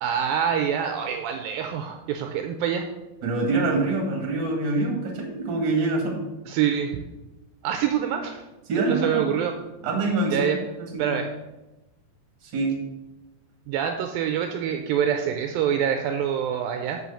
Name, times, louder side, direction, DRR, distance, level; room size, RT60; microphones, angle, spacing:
voice 1, 0.0-2.9 6.5-7.0 7.6-8.4 8.7-9.5 10.3-10.6 11.0-11.3 13.7-17.0, right 8 dB, 80° right, 5 dB, 2.2 m, -25 dB
voice 2, 3.2-6.2 8.7-9.3 9.8-10.5 10.9-11.2 12.4-12.7, right 3 dB, 40° right, 0 dB, 1.8 m, -25 dB
6.2 x 5.6 x 6.9 m, 1.0 s
omnidirectional pair, 4.4 m